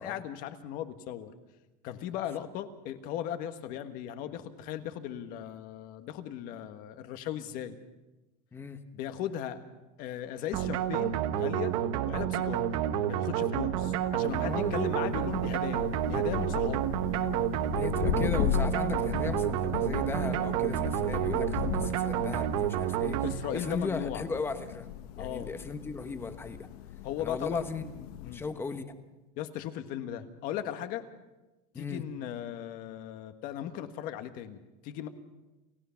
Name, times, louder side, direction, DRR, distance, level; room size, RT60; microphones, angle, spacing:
voice 1, 0.0-1.3 1.8-7.8 8.9-9.6 10.0-11.7 12.0-12.8 13.1-16.9 23.2-24.2 25.2-25.5 27.0-27.7 28.2-28.4 29.3-31.0 31.8-35.1, left 10 dB, 45° left, 8 dB, 1.5 m, -37 dB
sound 1, 10.5-23.8, right 11 dB, 60° right, 1.2 m, -30 dB
Thunder, 14.0-28.6, left 12 dB, 70° left, 1.0 m, -37 dB
voice 2, 14.3-14.8 17.7-23.2 23.5-24.9 25.2-26.7 27.2-28.9 31.7-32.0, left 4 dB, 10° left, 9 dB, 1.1 m, -37 dB
29.0 x 15.5 x 5.8 m, 1.1 s
supercardioid pair, 165°, 20 cm